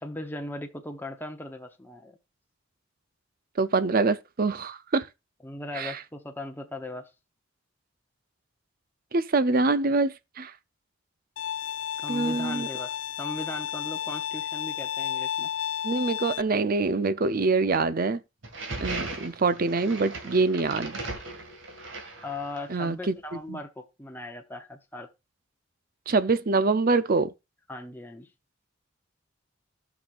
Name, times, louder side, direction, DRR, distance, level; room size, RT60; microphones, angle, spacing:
voice 1, 0.0-2.2 5.4-7.1 12.0-15.5 22.2-25.1 27.7-28.3, left 1 dB, 10° left, 0.8 m, -38 dB
voice 2, 3.6-5.1 5.7-6.0 9.1-10.5 12.1-12.7 15.8-18.2 18.8-21.0 22.7-23.1 23.5-23.6 26.1-27.3, right 3 dB, 45° right, 0.6 m, -25 dB
Bowed string instrument, 11.4-16.4, left 10 dB, 75° left, 0.4 m, -32 dB
sound 1, 18.4-22.8, right 3 dB, 65° right, 2.1 m, -37 dB
13.5 x 6.1 x 2.5 m
head